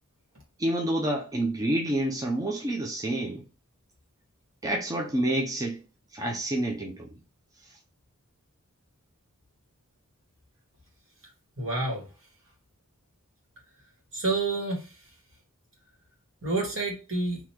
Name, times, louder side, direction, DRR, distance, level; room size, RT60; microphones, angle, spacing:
voice 1, 0.6-3.4 4.6-5.8 6.1-7.1 7.6-7.8, right 1 dB, 15° right, 0.5 m, -28 dB
voice 2, 11.6-12.0 14.1-14.8 16.4-17.4, right 3 dB, 60° right, 2.0 m, -28 dB
3.9 x 2.8 x 2.9 m
head